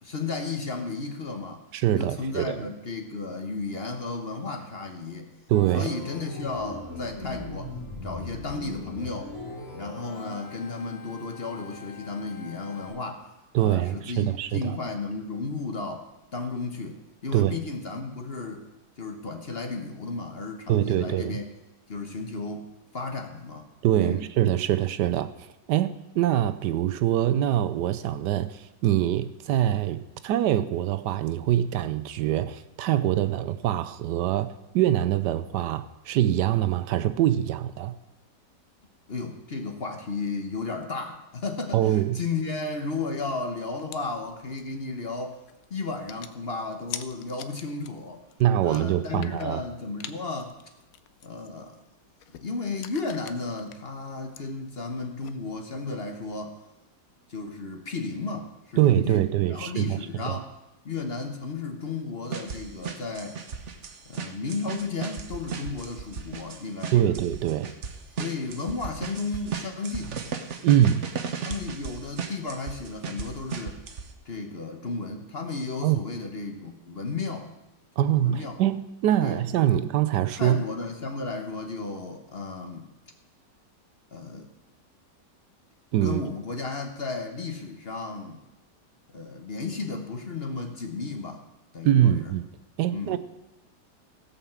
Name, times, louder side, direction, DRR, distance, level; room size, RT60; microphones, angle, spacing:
voice 1, 0.0-1.6 1.9-5.3 5.7-7.7 8.0-9.3 9.7-13.3 13.6-18.7 19.0-21.5 21.9-22.7 22.9-23.7 24.0-24.3 39.1-45.4 45.7-48.2 48.6-50.6 51.2-51.8 52.4-56.6 57.3-60.5 60.8-63.4 64.0-67.2 68.2-70.2 71.4-73.8 74.3-77.5 78.0-78.6 79.2-79.4 79.7-79.8 80.4-82.9 84.1-84.5 86.0-88.4 89.1-91.4 91.7-92.3 92.9-93.2, left 3 dB, 40° left, 4 dB, 1.1 m, -34 dB
voice 2, 1.7-2.6 5.5-5.9 13.5-14.8 17.3-17.6 20.7-21.4 23.8-25.3 25.7-38.0 41.7-42.2 48.4-49.6 58.8-60.4 66.9-67.7 70.6-71.1 75.8-76.0 78.0-80.6 85.9-86.2 91.8-92.5 92.8-93.2, right 12 dB, 80° right, 12 dB, 1.2 m, -24 dB
Organ, 5.5-12.9, left 2 dB, 20° right, 3.7 m, -40 dB
sound 1, 43.9-55.7, left 10 dB, 65° left, 0.9 m, -47 dB
sound 2, 62.3-74.0, right 6 dB, 50° right, 1.1 m, -35 dB
16.5 x 5.6 x 7.3 m, 0.96 s
omnidirectional pair, 1.9 m